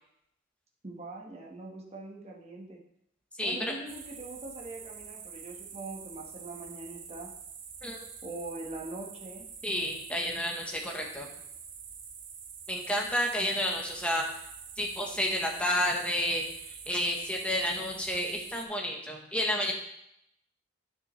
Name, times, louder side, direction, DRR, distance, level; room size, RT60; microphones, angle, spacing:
voice 1, 0.8-2.8 3.4-7.3 8.2-9.5, right 2 dB, 30° right, -2 dB, 1.3 m, -42 dB
voice 2, 3.4-3.8 7.8-8.0 9.6-11.3 12.7-14.3 14.8-19.7, left 1 dB, 5° left, 0 dB, 1.1 m, -30 dB
sound 1, 3.9-18.7, right 6 dB, 65° right, 0.9 m, -46 dB
9.2 x 6.2 x 3.2 m, 0.76 s
head